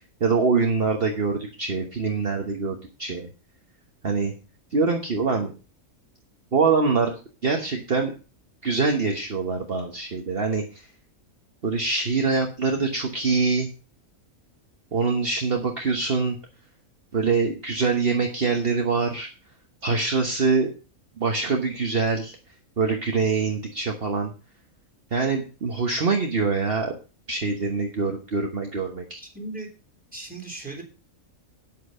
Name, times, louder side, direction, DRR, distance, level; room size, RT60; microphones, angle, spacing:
voice 1, 0.2-3.3 4.0-4.3 4.7-5.5 6.5-8.1 8.6-10.8 11.6-13.7 14.9-16.4 17.1-19.3 19.8-20.7 21.2-22.4 22.8-24.3 25.1-26.9 27.3-29.2, right 4 dB, 45° right, 3 dB, 1.4 m, -24 dB
voice 2, 29.2-29.7 30.1-30.8, right 2 dB, 5° right, -1 dB, 3.5 m, -37 dB
9.3 x 8.4 x 5.5 m, 0.34 s
omnidirectional pair, 1.5 m